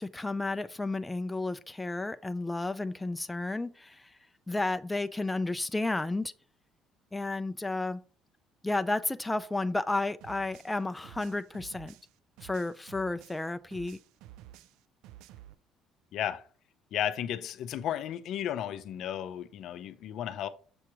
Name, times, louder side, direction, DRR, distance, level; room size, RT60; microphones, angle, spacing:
voice 1, 0.0-4.1 4.5-6.3 7.1-8.0 8.6-11.9 12.4-14.0, left 2 dB, 10° left, 0.3 m, -32 dB
sound 1, 10.2-13.5 13.7-15.5, right 13 dB, 85° right, 0.3 m, -52 dB
voice 2, 16.1-16.5 16.9-20.5, left 10 dB, 65° left, 0.5 m, -34 dB
6.9 x 2.9 x 4.8 m
cardioid pair, 100°, 0 cm